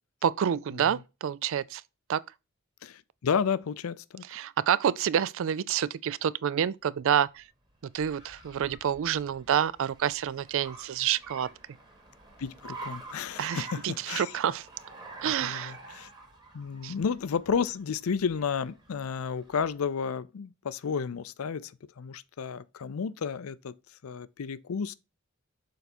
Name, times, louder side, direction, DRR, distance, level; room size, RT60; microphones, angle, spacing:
voice 1, 0.2-1.8 2.1-2.2 4.3-7.4 7.9-11.5 13.4-14.7 15.2-15.7 16.8-16.9, right 9 dB, 65° right, 0.4 m, -28 dB
voice 2, 2.8-4.2 12.4-14.3 15.3-16.1 16.5-21.7 22.0-23.7 24.0-24.9, left 6 dB, 75° left, 0.5 m, -32 dB
Car, 7.4-19.9, right 3 dB, 20° right, 1.7 m, -48 dB
6.6 x 4.0 x 4.3 m
head